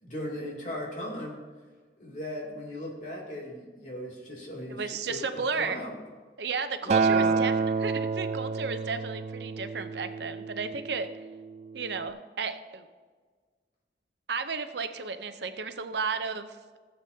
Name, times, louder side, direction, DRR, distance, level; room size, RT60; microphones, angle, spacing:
voice 1, 0.0-1.4 2.0-6.0 6.8-7.4, left 1 dB, 45° left, -3 dB, 2.6 m, -38 dB
voice 2, 4.7-5.8 6.4-7.5 7.8-11.2 11.7-12.8 14.3-16.8, right 5 dB, 75° right, 9 dB, 0.7 m, -33 dB
Acoustic guitar, 6.9-11.2 12.0-12.1, right 4 dB, 40° right, 0.3 m, -28 dB
16.5 x 7.9 x 2.8 m, 1.5 s
head